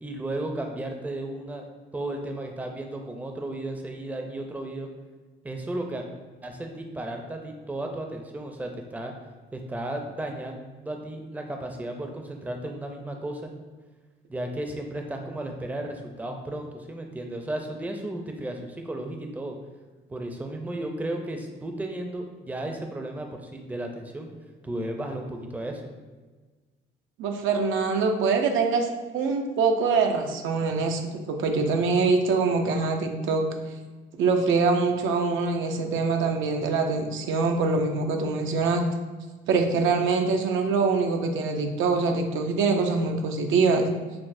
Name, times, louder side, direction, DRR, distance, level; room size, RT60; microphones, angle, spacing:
voice 1, 0.0-1.6 1.9-4.9 5.4-6.1 6.4-9.1 9.5-13.5 14.3-19.5 20.1-24.3 24.6-25.8, right 1 dB, 10° right, 3 dB, 0.4 m, -34 dB
voice 2, 27.2-28.9 29.1-33.5 34.2-38.8 39.5-43.8, right 4 dB, 85° right, 4 dB, 0.5 m, -24 dB
5.9 x 2.0 x 2.5 m, 1.3 s
cardioid pair, 90°, 20 cm